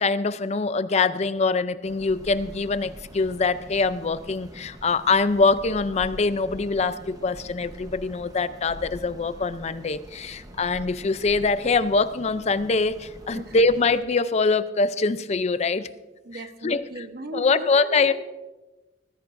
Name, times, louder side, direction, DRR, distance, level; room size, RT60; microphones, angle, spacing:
voice 1, 0.0-15.9 16.6-16.8 17.3-18.1, left 4 dB, 35° left, 14 dB, 0.4 m, -23 dB
sound 1, 1.8-14.0, equal, 20° right, 1.0 m, -44 dB
voice 2, 16.2-18.1, right 2 dB, 60° right, 7 dB, 1.1 m, -37 dB
20.0 x 15.0 x 2.6 m, 1.1 s
head